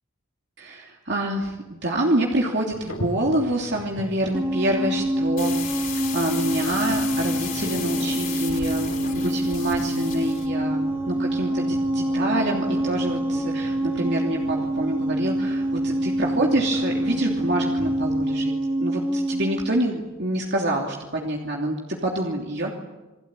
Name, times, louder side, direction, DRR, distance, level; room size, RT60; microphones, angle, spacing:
voice 1, 0.6-18.5 18.8-22.7, right 1 dB, 55° right, -1 dB, 3.0 m, -27 dB
sound 1, 2.7-18.3, equal, 80° left, 6.4 m, -40 dB
sound 2, 4.3-19.7, right 1 dB, 10° right, 2.1 m, -26 dB
sound 3, 5.4-10.5, left 8 dB, 40° left, 5.3 m, -35 dB
29.0 x 21.5 x 9.1 m, 1.1 s
head